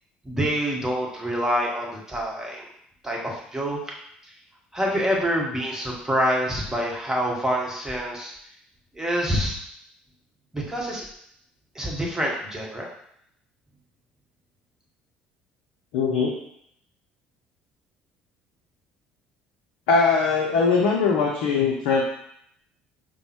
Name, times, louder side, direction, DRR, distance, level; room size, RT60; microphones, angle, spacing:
voice 1, 0.2-2.6 3.0-3.8 4.7-8.3 8.9-9.5 10.5-11.0 11.7-12.9, equal, 10° right, -2 dB, 1.0 m, -26 dB
voice 2, 15.9-16.4 19.9-22.0, left 5 dB, 65° left, -1 dB, 0.5 m, -21 dB
5.2 x 2.0 x 3.0 m, 0.69 s
figure-of-eight pair, 55°, 5 cm